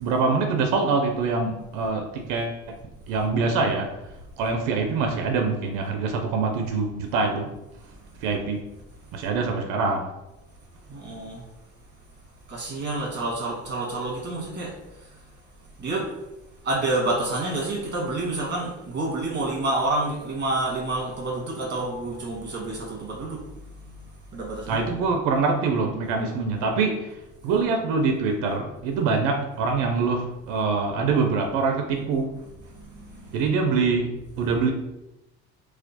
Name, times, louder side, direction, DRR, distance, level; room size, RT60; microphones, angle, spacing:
voice 1, 0.0-2.8 3.1-3.9 4.4-7.5 8.2-8.7 9.1-10.1 24.7-27.2 27.4-32.3 33.3-34.7, right 4 dB, 85° right, 3 dB, 0.5 m, -24 dB
voice 2, 10.9-11.4 12.5-15.1 15.8-16.1 16.6-23.4 24.3-24.9 32.8-33.3, right 2 dB, 35° right, -3 dB, 1.4 m, -28 dB
4.2 x 2.4 x 2.7 m, 0.96 s
cardioid pair, 125°, 32 cm